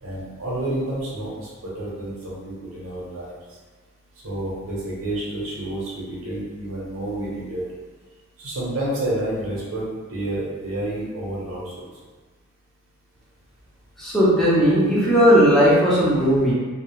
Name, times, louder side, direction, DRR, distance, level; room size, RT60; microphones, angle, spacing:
voice 1, 0.0-3.3 4.2-7.6 8.4-11.9, right 1 dB, 85° right, -6 dB, 0.9 m, -29 dB
voice 2, 14.0-16.5, equal, ahead, -9 dB, 0.7 m, -17 dB
2.3 x 2.1 x 3.0 m, 1.3 s
head